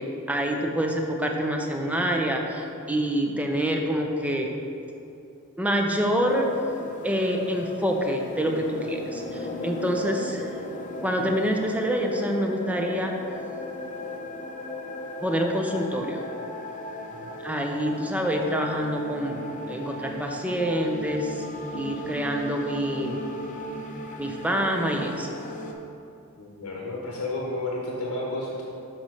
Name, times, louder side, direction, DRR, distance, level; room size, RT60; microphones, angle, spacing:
voice 1, 0.0-4.5 5.6-6.5 7.0-10.5 11.0-13.1 15.2-16.2 17.4-19.4 19.7-21.4 21.7-23.2 24.2-25.4, equal, 5° right, 2 dB, 0.6 m, -26 dB
sound 1, 6.3-25.7, left 1 dB, 35° left, 0.7 m, -37 dB
voice 2, 26.4-28.6, left 2 dB, 90° left, -3 dB, 1.0 m, -32 dB
6.6 x 4.2 x 6.2 m, 2.7 s
head